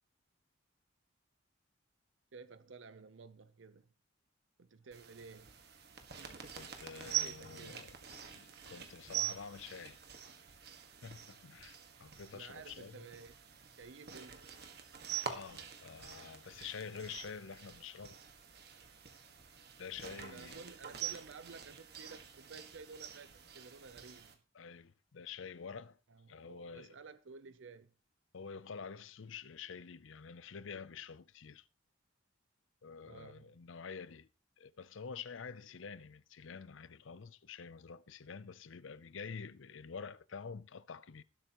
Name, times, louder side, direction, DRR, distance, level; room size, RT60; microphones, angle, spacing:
voice 1, 2.3-3.9 4.6-5.6 7.0-7.9 12.3-13.4 13.8-14.5 20.1-24.4 26.1-27.9 33.0-33.6, right 4 dB, 70° right, 0.6 m, -53 dB
sound 1, 4.9-24.3, right 10 dB, 50° right, 1.6 m, -45 dB
voice 2, 6.6-10.0 11.0-13.0 15.3-18.2 19.8-20.6 24.5-26.0 26.3-27.0 28.3-31.7 32.8-34.3 34.6-41.2, left 6 dB, 75° left, 0.6 m, -48 dB
18.0 x 8.0 x 3.0 m
head